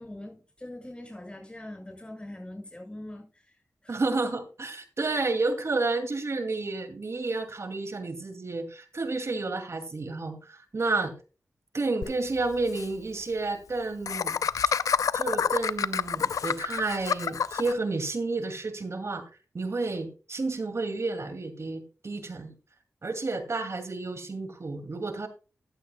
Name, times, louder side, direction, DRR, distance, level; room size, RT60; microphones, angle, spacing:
voice 1, 0.0-3.6 3.8-4.0, left 1 dB, 20° left, 6.3 m, -42 dB
voice 2, 3.9-11.1 11.7-14.4 15.1-19.2 19.5-22.5 23.0-25.3, right 3 dB, 55° right, 2.3 m, -31 dB
Laughter, 12.0-12.1 12.4-12.5 12.7-12.9 14.1-17.7, left 7 dB, 90° left, 0.5 m, -27 dB
14.5 x 11.5 x 2.2 m
cardioid pair, 50°, 6 cm